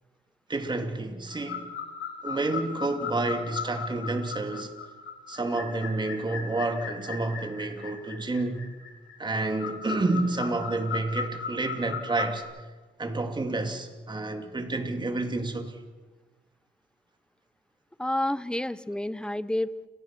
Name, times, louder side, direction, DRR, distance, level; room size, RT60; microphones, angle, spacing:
voice 1, 0.5-1.7 2.2-4.7 5.3-8.7 9.2-12.4 13.0-15.8, right 2 dB, 20° right, 2.8 m, -29 dB
sound 1, 1.3-12.4, left 6 dB, 85° left, 7.5 m, -37 dB
voice 2, 18.0-19.9, left 1 dB, 5° left, 0.9 m, -29 dB
30.0 x 18.5 x 6.1 m
cardioid pair, 90°, 20 cm